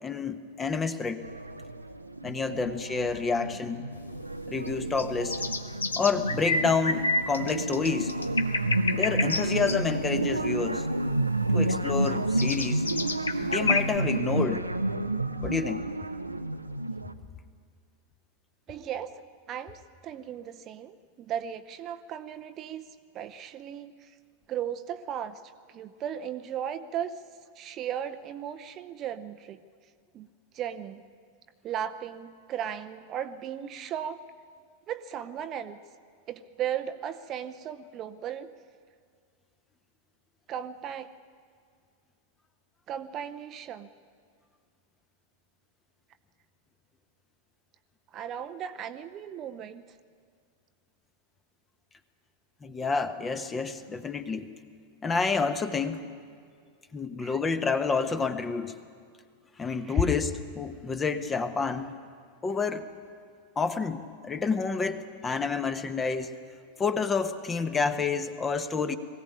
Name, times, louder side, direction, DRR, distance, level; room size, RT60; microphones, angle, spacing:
voice 1, 0.0-1.2 2.2-3.8 4.5-5.4 6.0-8.1 8.9-10.9 11.5-12.9 13.4-14.7 15.4-15.8 52.6-54.5 55.0-56.0 56.9-58.7 59.6-62.0 62.4-62.9 63.6-66.3 66.8-69.0, left 5 dB, 15° left, 11 dB, 1.1 m, -29 dB
sound 1, 1.2-17.1, right 2 dB, 85° right, 0.7 m, -30 dB
sound 2, 3.9-14.0, left 3 dB, 75° left, 1.1 m, -31 dB
voice 2, 18.7-22.9 23.1-24.2 24.5-25.4 25.7-27.2 27.5-29.6 30.1-30.3 30.5-31.0 31.6-34.2 34.9-35.8 36.3-38.5 40.5-41.1 42.9-43.9 48.1-49.9 57.2-57.4 59.8-60.1, right 9 dB, 35° right, 10 dB, 0.7 m, -36 dB
21.0 x 16.0 x 9.4 m, 2.1 s
figure-of-eight pair, 90°, 0 cm